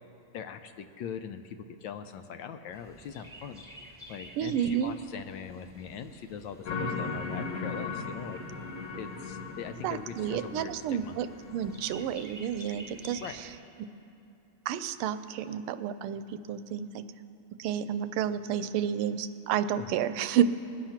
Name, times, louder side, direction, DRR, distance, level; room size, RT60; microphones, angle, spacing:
voice 1, 0.3-3.6 4.1-8.4 9.0-11.2 13.2-13.4 19.8-19.9, left 7 dB, 75° left, 8 dB, 1.2 m, -41 dB
Chirp tweet, 2.7-13.6, equal, 5° right, 1.7 m, -52 dB
voice 2, 4.4-5.0 9.8-11.3 11.5-13.2 14.7-17.0 17.6-20.4, right 9 dB, 90° right, 12 dB, 1.5 m, -30 dB
sound 1, 6.7-12.2, left 4 dB, 55° left, 1.4 m, -38 dB
20.5 x 7.3 x 5.8 m, 2.8 s
omnidirectional pair, 2.3 m